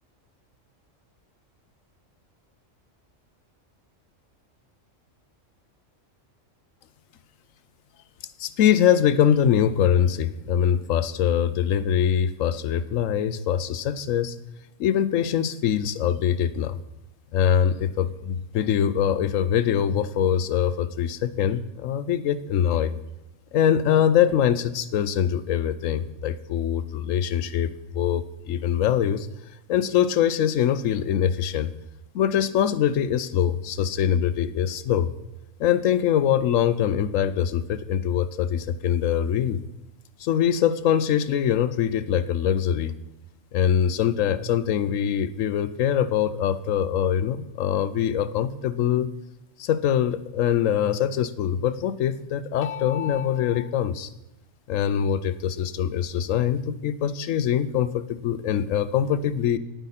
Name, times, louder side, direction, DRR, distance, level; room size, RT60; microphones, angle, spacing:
voice 1, 8.4-14.4 14.8-16.8 17.3-22.9 23.5-29.3 29.7-31.7 32.1-35.1 35.6-39.6 40.2-43.0 43.5-49.1 49.6-54.1 54.7-59.6, left 9 dB, 90° left, 14 dB, 1.0 m, -23 dB
10.0 x 9.2 x 4.2 m, 0.99 s
omnidirectional pair, 1.3 m